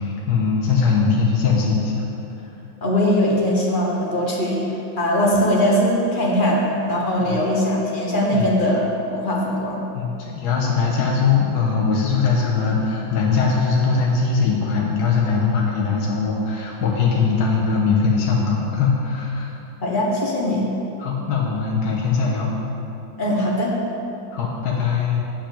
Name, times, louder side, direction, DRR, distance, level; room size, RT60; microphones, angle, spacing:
voice 1, 0.0-2.1 7.2-7.4 8.3-8.5 9.9-19.5 21.0-22.5 24.3-25.2, left 5 dB, 60° left, -3 dB, 1.6 m, -21 dB
voice 2, 2.8-8.8 9.1-9.8 19.8-20.7 23.2-23.8, equal, 30° left, -3 dB, 1.3 m, -21 dB
9.1 x 4.9 x 7.1 m, 2.9 s
omnidirectional pair, 2.1 m